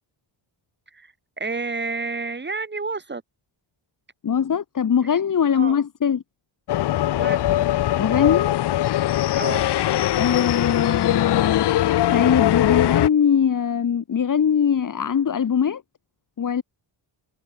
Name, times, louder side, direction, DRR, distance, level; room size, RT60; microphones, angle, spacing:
voice 1, 0.9-3.2 5.5-5.8 7.1-7.7 9.3-9.7, right 3 dB, 20° right, 6.4 m, -30 dB
voice 2, 4.2-6.2 8.0-8.6 10.2-11.6 12.1-15.8 16.4-16.6, left 7 dB, 40° left, 1.9 m, -21 dB
sound 1, 6.7-13.1, left 13 dB, 55° left, 0.6 m, -21 dB
wide cardioid pair, 170°, 49 cm